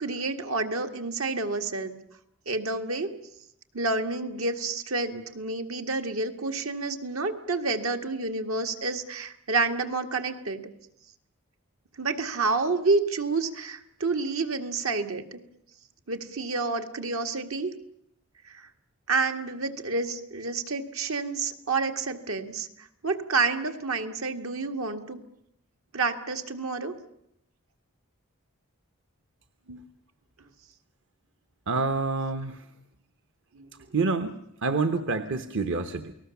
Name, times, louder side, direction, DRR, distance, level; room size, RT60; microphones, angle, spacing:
voice 1, 0.0-1.9 2.5-3.1 3.7-10.7 12.0-15.4 16.1-17.7 18.5-18.7 19.1-25.2 25.9-26.9 33.5-33.9, right 3 dB, 80° right, 5 dB, 2.0 m, -29 dB
voice 2, 31.7-32.6 33.9-36.1, right 4 dB, 60° right, 9 dB, 1.1 m, -28 dB
29.0 x 19.0 x 7.2 m, 0.79 s
head